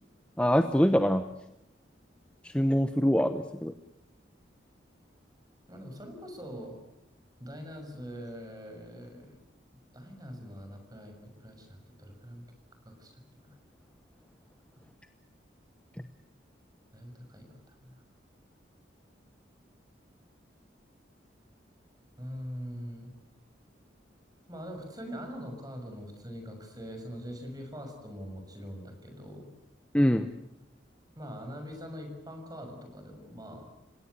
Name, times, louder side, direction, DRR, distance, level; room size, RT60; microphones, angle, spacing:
voice 1, 0.4-1.2 2.5-3.7 29.9-30.3, equal, 5° left, 8 dB, 0.9 m, -24 dB
voice 2, 5.7-6.8 7.4-9.4 9.9-12.4 12.8-13.6 16.9-18.0 22.2-23.1 24.5-29.5 31.2-33.7, equal, 20° right, 5 dB, 6.4 m, -43 dB
29.5 x 17.5 x 8.2 m, 0.84 s
head